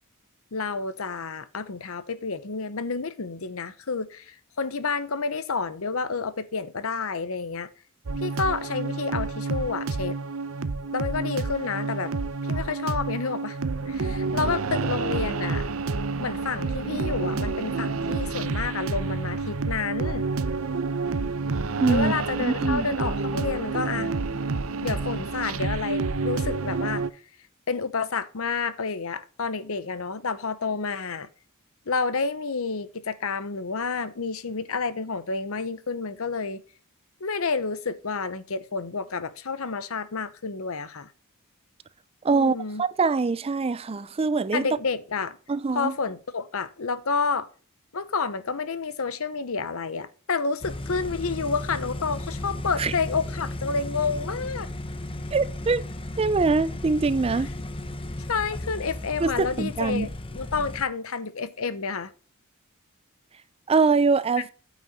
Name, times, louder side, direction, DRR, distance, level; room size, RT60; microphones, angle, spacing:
voice 1, 0.5-7.7 8.2-10.2 10.9-12.1 12.5-13.6 13.9-15.7 16.2-20.3 21.9-24.1 24.8-27.0 27.7-31.3 31.9-36.6 37.2-41.1 42.3-42.8 44.5-45.4 45.7-47.5 47.9-54.7 57.3-57.5 58.3-62.1, left 4 dB, 70° left, 0.9 m, -29 dB
sound 1, 8.1-27.1, right 4 dB, 70° right, 0.7 m, -29 dB
voice 2, 21.8-22.9 42.2-44.7 45.5-45.9 52.8-52.9 55.3-55.8 56.2-57.5 59.2-60.1 63.7-64.5, right 4 dB, 25° right, 0.4 m, -23 dB
sound 2, 50.6-60.8, left 1 dB, 25° left, 0.8 m, -35 dB
8.9 x 6.2 x 4.1 m
head